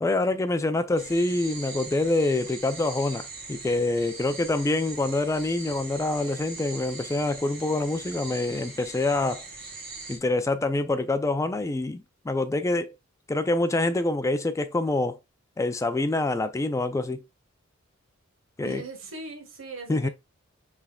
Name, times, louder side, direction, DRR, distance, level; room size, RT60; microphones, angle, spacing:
voice 1, 0.0-9.4 10.1-12.9 13.3-15.2 15.6-17.2 18.6-18.8 19.9-20.1, left 2 dB, 15° left, 0.3 m, -26 dB
sound 1, 1.0-10.2, right 3 dB, 50° right, 1.4 m, -41 dB
voice 2, 18.6-20.1, right 3 dB, 80° right, 1.4 m, -39 dB
5.7 x 3.4 x 2.3 m
head